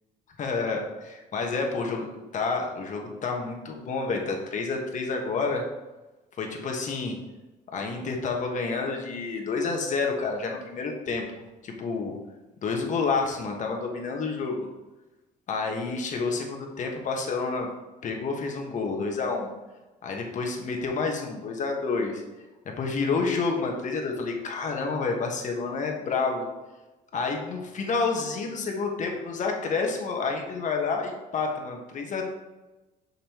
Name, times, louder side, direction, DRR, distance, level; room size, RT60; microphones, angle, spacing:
voice 1, 0.4-5.6 6.4-7.2 7.7-11.2 11.6-12.2 12.6-14.7 15.5-17.7 18.0-19.5 20.0-22.2 22.8-26.4 27.1-32.3, left 4 dB, 45° left, 1 dB, 1.2 m, -29 dB
6.1 x 5.3 x 3.0 m, 1.1 s
cardioid pair, 110°, 17 cm